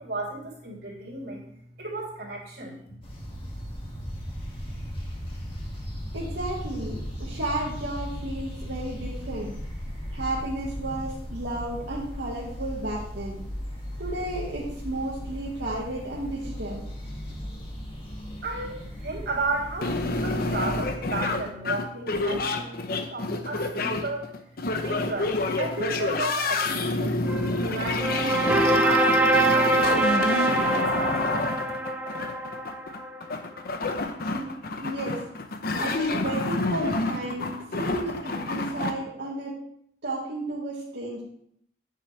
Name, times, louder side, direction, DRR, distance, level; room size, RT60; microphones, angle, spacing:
voice 1, 0.0-1.4 1.8-2.7 18.0-18.1 18.4-19.9 20.2-24.2 24.8-28.1 28.5-31.5, right 2 dB, 65° right, -4 dB, 3.2 m, -33 dB
sound 1, 3.0-21.0, equal, 30° left, 2.0 m, -37 dB
voice 2, 6.1-9.5 10.1-13.4 14.0-16.8 34.2-34.5 34.8-35.2 35.7-39.6 40.0-41.2, right 1 dB, 90° right, -6 dB, 1.7 m, -33 dB
sound 2, 19.8-38.9, left 2 dB, 60° left, 0.8 m, -28 dB
sound 3, 27.3-33.2, right 2 dB, 10° right, 0.7 m, -24 dB
9.5 x 7.6 x 3.3 m, 0.69 s
head